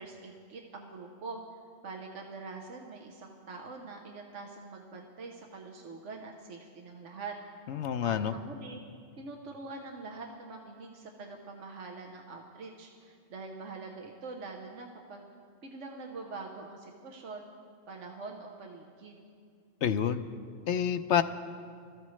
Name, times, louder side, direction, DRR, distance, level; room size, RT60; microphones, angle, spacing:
voice 1, 0.0-1.4 1.8-7.3 8.0-8.8 9.2-15.2 15.6-17.5 17.9-19.2, right 3 dB, 80° right, 1 dB, 1.4 m, -44 dB
voice 2, 7.7-8.4 19.8-20.3 20.7-21.2, left 8 dB, 75° left, 10 dB, 0.9 m, -28 dB
25.5 x 14.0 x 3.2 m, 2.2 s
omnidirectional pair, 1.2 m